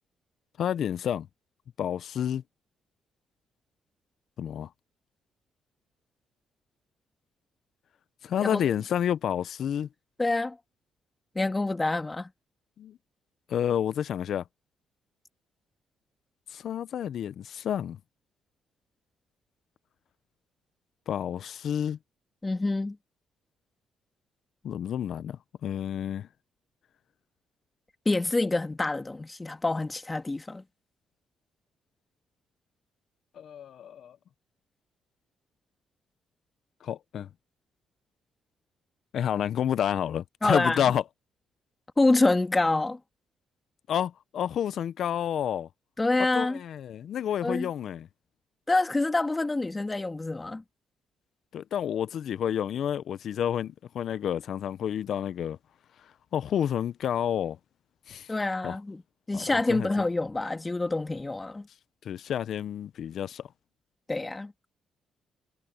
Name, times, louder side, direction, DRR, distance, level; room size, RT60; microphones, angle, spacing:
voice 1, 0.6-1.3 1.8-2.4 4.4-4.7 8.2-9.9 12.8-13.0 13.5-14.4 16.5-18.0 21.1-22.0 24.6-26.3 33.4-34.2 36.8-37.3 39.1-41.0 43.9-45.7 46.3-48.1 51.5-55.6 56.3-57.6 58.1-58.3 58.6-58.8 59.3-59.9 62.0-63.5, left 9 dB, 65° left, 0.5 m, -30 dB
voice 2, 10.2-10.6 11.3-12.3 22.4-23.0 28.1-30.6 40.4-40.9 42.0-43.0 46.0-46.6 47.4-47.7 48.7-50.6 58.3-59.0 59.3-61.7 64.1-64.7, left 2 dB, 20° left, 2.2 m, -27 dB
cardioid pair, 90°, 0 cm